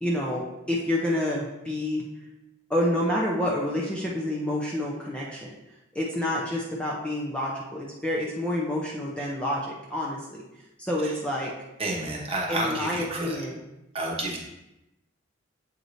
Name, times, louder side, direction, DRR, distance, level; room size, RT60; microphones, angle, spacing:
voice 1, 0.0-2.0 2.7-5.5 5.9-10.4 10.8-11.5 12.5-13.6, left 1 dB, 5° left, -4 dB, 0.7 m, -28 dB
voice 2, 11.8-13.4 13.9-14.4, right 2 dB, 30° right, -2 dB, 1.1 m, -30 dB
7.8 x 4.7 x 2.7 m, 0.93 s
head